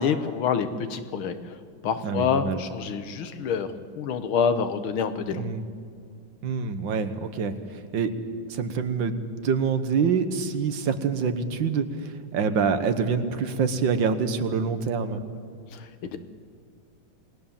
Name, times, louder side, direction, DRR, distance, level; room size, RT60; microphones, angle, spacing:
voice 1, 0.0-1.6 1.8-3.7 4.0-5.4 15.7-16.2, left 6 dB, 90° left, 10 dB, 2.0 m, -27 dB
voice 2, 2.0-2.6 5.3-5.6 6.4-8.1 8.5-15.2, right 5 dB, 65° right, 10 dB, 1.9 m, -26 dB
28.0 x 19.5 x 7.3 m, 2.3 s
omnidirectional pair, 2.2 m